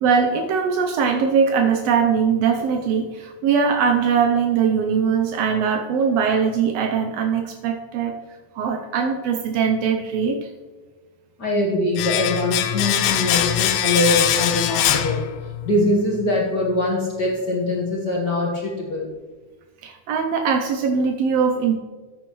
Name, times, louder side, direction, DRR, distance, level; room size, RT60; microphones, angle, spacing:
voice 1, 0.0-8.2 8.5-10.5 19.8-21.8, right 6 dB, 80° right, 3 dB, 1.4 m, -21 dB
voice 2, 11.4-15.2 15.6-19.1, left 1 dB, 55° left, -2 dB, 1.2 m, -22 dB
Domestic sounds home sounds, 12.0-15.8 16.0-16.2, left 11 dB, 85° left, 2.3 m, -22 dB
14.0 x 9.0 x 3.1 m, 1.4 s
omnidirectional pair, 3.6 m